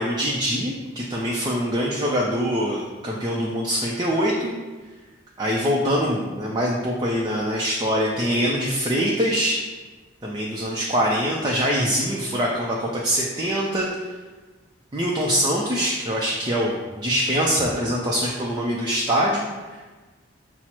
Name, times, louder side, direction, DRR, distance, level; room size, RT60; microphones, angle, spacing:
voice 1, 0.0-4.5 5.4-9.6 10.2-14.1 14.9-19.8, equal, 20° right, -3 dB, 0.4 m, -24 dB
5.9 x 2.0 x 4.3 m, 1.3 s
head